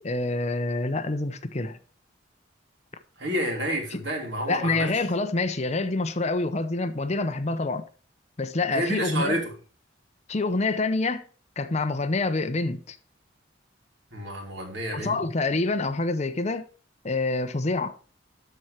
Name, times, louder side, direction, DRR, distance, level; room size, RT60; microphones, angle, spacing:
voice 1, 0.0-1.8 3.9-4.0 4.5-7.8 8.4-9.4 10.3-11.2 11.6-13.0 14.9-16.7 17.0-17.9, left 3 dB, 35° left, 0.6 m, -27 dB
voice 2, 3.2-4.9 8.7-9.5 14.1-15.2, equal, 60° right, 3.0 m, -29 dB
12.5 x 4.4 x 4.8 m
head